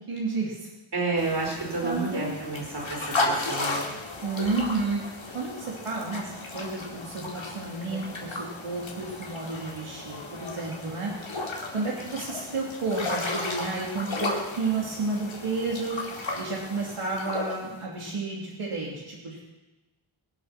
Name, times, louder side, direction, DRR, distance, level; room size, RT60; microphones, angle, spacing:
voice 1, 0.1-0.7 1.8-2.4 4.2-5.0 5.3-11.1 11.7-16.0 16.4-19.5, right 3 dB, 80° right, -4 dB, 3.2 m, -31 dB
voice 2, 0.9-3.8, right 3 dB, 50° right, -1 dB, 4.8 m, -30 dB
sound 1, 1.2-17.8, left 2 dB, 65° left, 2.9 m, -34 dB
23.5 x 7.9 x 6.1 m, 1.1 s
wide cardioid pair, 125°, 50 cm